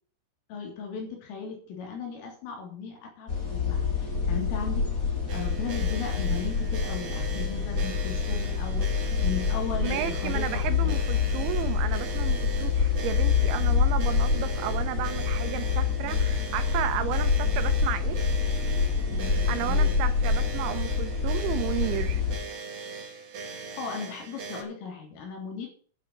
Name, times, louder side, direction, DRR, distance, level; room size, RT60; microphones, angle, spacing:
voice 1, 0.5-11.0 19.1-20.0 23.5-25.7, left 5 dB, 80° left, 6.0 m, -37 dB
sound 1, 3.3-22.4, left 5 dB, 30° left, 1.5 m, -26 dB
sound 2, 5.3-24.6, right 4 dB, 40° right, 3.0 m, -40 dB
voice 2, 9.8-18.2 19.5-22.2, right 12 dB, 80° right, 3.0 m, -33 dB
11.5 x 7.2 x 7.1 m
omnidirectional pair, 5.8 m